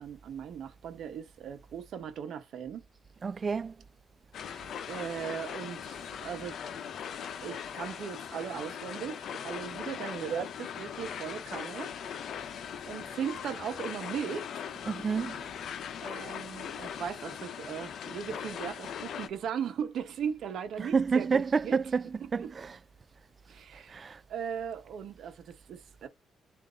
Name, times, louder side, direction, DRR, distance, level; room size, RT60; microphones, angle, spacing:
voice 1, 0.0-2.8 4.5-6.6 7.4-11.9 12.9-14.5 16.0-21.8 22.2-22.5 23.5-26.1, right 8 dB, 70° right, 1.0 m, -38 dB
voice 2, 3.2-3.7 14.9-15.3 20.8-22.0 22.3-22.7 23.9-24.2, right 5 dB, 40° right, 0.3 m, -28 dB
sound 1, 4.3-19.3, left 8 dB, 65° left, 0.7 m, -40 dB
3.8 x 2.7 x 3.7 m
cardioid pair, 90°, 0 cm